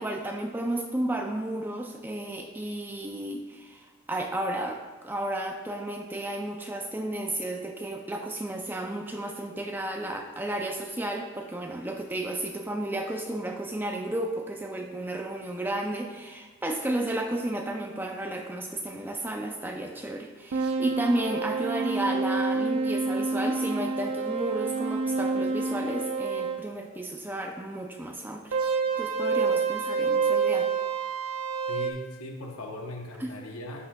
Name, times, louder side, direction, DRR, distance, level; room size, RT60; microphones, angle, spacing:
voice 1, 0.0-28.6 29.0-30.7 33.2-33.3, right 1 dB, 10° right, 3 dB, 0.4 m, -33 dB
sound 1, 20.5-26.6 28.5-31.9, right 4 dB, 90° right, 0.6 m, -28 dB
voice 2, 31.7-33.9, left 1 dB, 85° left, 2 dB, 0.8 m, -39 dB
11.0 x 6.1 x 2.3 m, 1.3 s
head